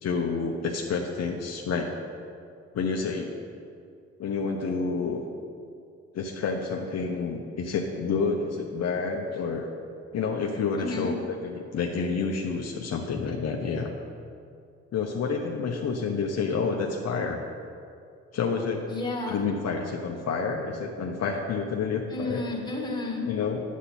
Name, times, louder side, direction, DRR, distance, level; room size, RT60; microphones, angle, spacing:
voice 1, 0.0-1.9 2.7-3.3 4.2-5.2 6.1-9.7 10.1-13.9 14.9-17.4 18.3-18.9 19.3-22.4 23.2-23.6, left 5 dB, 55° left, 1 dB, 0.9 m, -29 dB
voice 2, 10.8-11.1 18.9-19.5 22.1-23.3, left 2 dB, 15° left, -1 dB, 1.7 m, -32 dB
9.7 x 8.3 x 4.3 m, 2.3 s
cardioid pair, 90°, 30 cm